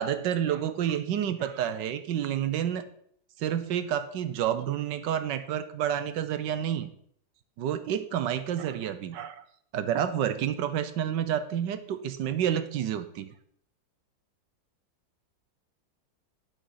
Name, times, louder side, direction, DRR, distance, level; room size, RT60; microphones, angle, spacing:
voice 1, 0.0-2.8 3.4-6.9 7.6-9.4 9.7-13.3, right 9 dB, 70° right, 11 dB, 1.2 m, -29 dB
11.5 x 5.2 x 5.6 m, 0.65 s
omnidirectional pair, 2.2 m